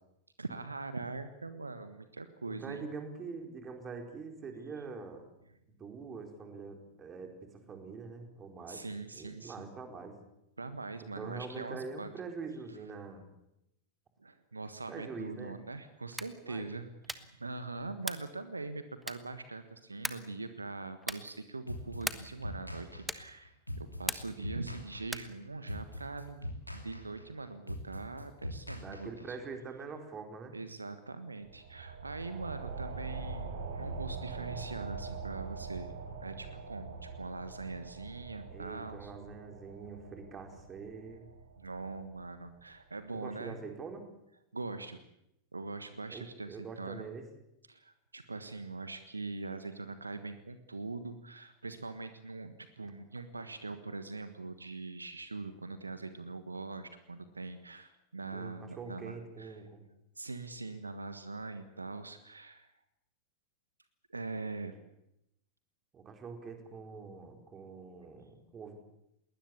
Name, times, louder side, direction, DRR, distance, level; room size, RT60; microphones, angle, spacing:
voice 1, 0.4-2.9 8.7-9.7 10.6-12.1 14.2-26.5 26.7-29.4 30.5-39.1 41.6-43.6 44.5-45.0 45.5-47.0 47.7-59.6 60.2-62.7 64.1-64.7, right 3 dB, 80° right, 11 dB, 1.4 m, -42 dB
voice 2, 2.5-5.3 5.8-8.8 9.1-10.2 11.0-13.2 14.9-15.6 16.4-16.7 28.8-30.5 38.5-41.3 43.1-44.1 46.1-47.3 58.3-59.8 65.9-68.8, right 4 dB, 25° right, 4 dB, 4.6 m, -44 dB
sound 1, 16.1-16.4 17.0-17.4 18.0-18.4 19.0-19.4 20.0-20.4 21.0-21.4 22.0-22.4 23.0-23.4 24.0-24.5 25.0-25.4, right 1 dB, 5° right, 1.3 m, -39 dB
sound 2, 21.7-29.5, left 1 dB, 90° left, 2.9 m, -42 dB
sound 3, 31.4-42.6, right 4 dB, 60° right, 4.1 m, -43 dB
21.0 x 19.5 x 8.5 m, 0.83 s
figure-of-eight pair, 90°, 0 cm